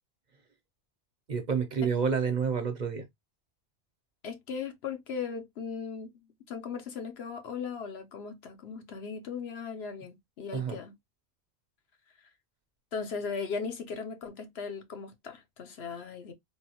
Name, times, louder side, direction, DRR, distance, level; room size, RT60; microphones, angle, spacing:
voice 1, 1.3-3.1 10.5-10.8, right 6 dB, 45° right, 0.7 m, -29 dB
voice 2, 4.2-10.9 12.9-16.3, left 5 dB, 75° left, 1.0 m, -38 dB
3.6 x 2.3 x 2.8 m
omnidirectional pair, 1.1 m